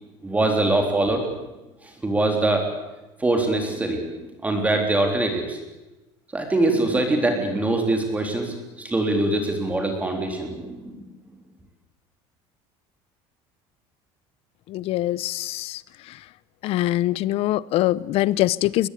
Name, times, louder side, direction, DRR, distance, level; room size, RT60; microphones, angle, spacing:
voice 1, 0.2-1.2 1.8-2.7 3.2-4.1 4.4-5.6 6.3-11.1, right 2 dB, 10° right, 3 dB, 3.8 m, -23 dB
voice 2, 14.7-16.2 16.6-18.9, left 15 dB, 55° left, 20 dB, 0.8 m, -24 dB
23.5 x 20.5 x 8.5 m, 1.1 s
cardioid pair, 135°, 12 cm